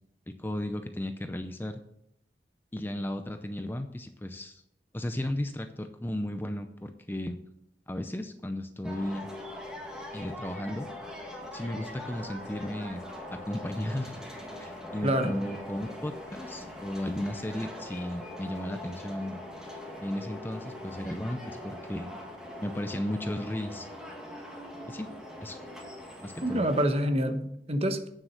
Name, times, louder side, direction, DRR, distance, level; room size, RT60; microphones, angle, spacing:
voice 1, 0.3-1.8 2.7-4.6 4.9-7.4 7.9-9.3 10.1-10.9 11.5-13.0 13.3-14.2 14.5-19.4 20.0-22.1 22.6-23.9 24.9-25.1 25.4-25.6 26.2-26.7, left 1 dB, 10° left, 8 dB, 0.5 m, -35 dB
sound 1, 8.8-26.9, left 1 dB, 5° right, 1.9 m, -42 dB
voice 2, 15.0-15.4 26.4-28.1, right 1 dB, 35° right, 7 dB, 1.0 m, -27 dB
9.0 x 7.6 x 6.4 m, 0.77 s
head